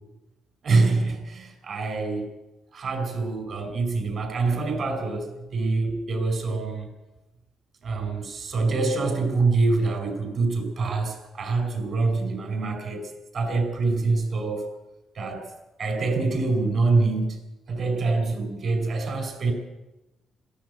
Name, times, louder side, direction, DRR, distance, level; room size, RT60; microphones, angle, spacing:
voice 1, 0.6-2.3 2.7-6.9 7.8-14.7 15.1-15.5 15.8-17.4 17.7-19.5, right 3 dB, 50° right, 5 dB, 5.1 m, -25 dB
21.5 x 15.0 x 8.1 m, 1.0 s
cardioid pair, 110°, 0 cm